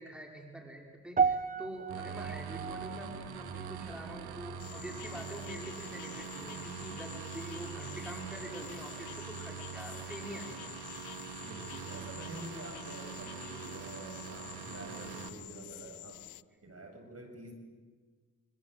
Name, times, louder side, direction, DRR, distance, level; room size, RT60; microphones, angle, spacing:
voice 1, 0.0-10.7, right 1 dB, ahead, 0 dB, 5.9 m, -45 dB
sound 1, 1.2-5.6 5.8-6.2 6.9-7.0, right 5 dB, 20° right, 1.1 m, -35 dB
sound 2, 1.9-15.3, right 7 dB, 75° right, 2.4 m, -43 dB
sound 3, 4.6-16.4, left 18 dB, 80° left, 0.8 m, -49 dB
voice 2, 11.4-16.3 16.6-17.5, right 1 dB, 40° right, 5 dB, 7.4 m, -47 dB
26.5 x 25.0 x 8.0 m, 1.5 s
supercardioid pair, 65°, 38 cm